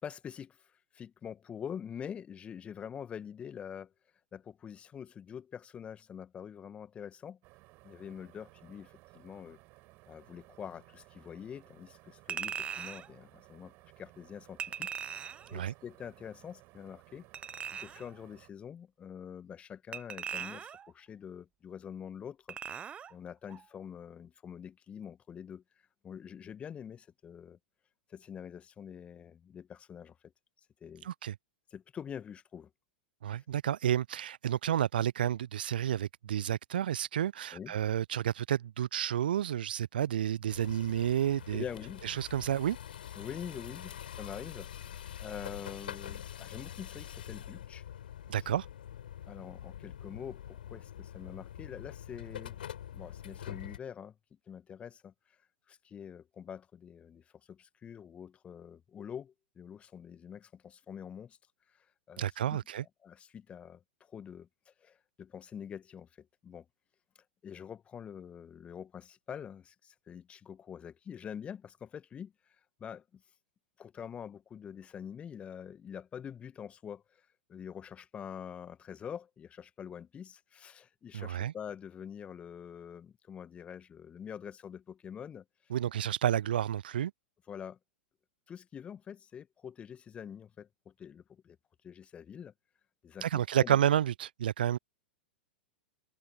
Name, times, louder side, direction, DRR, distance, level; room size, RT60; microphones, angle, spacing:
voice 1, 0.0-3.9 4.3-7.4 7.8-9.6 10.1-17.3 17.7-22.6 23.1-25.6 26.0-27.6 28.1-30.3 30.8-31.1 31.7-32.7 33.3-33.4 37.5-37.7 41.5-42.0 43.1-47.8 48.4-48.5 49.3-52.6 52.9-54.2 54.5-55.1 55.7-61.4 61.7-62.6 63.0-66.7 67.4-72.3 72.8-73.2 73.8-85.7 87.5-87.8 88.5-91.6 91.8-92.5 93.0-93.8, left 8 dB, 20° left, 1.7 m, -45 dB
sound 1, 7.4-18.5, right 23 dB, 40° right, 6.6 m, -59 dB
Chink clink, 12.3-13.1 14.6-15.5 17.3-18.1 19.9-20.9 22.5-23.1 23.5-23.6, right 8 dB, 20° right, 1.1 m, -39 dB
voice 2, 31.0-31.3 33.2-41.6 42.0-42.8 48.3-48.7 62.2-62.8 81.1-81.5 85.7-87.1 93.2-94.8, right 10 dB, 60° right, 0.6 m, -30 dB
sound 2, 40.5-53.8, left 10 dB, 65° left, 6.9 m, -45 dB
figure-of-eight pair, 95°, 6 cm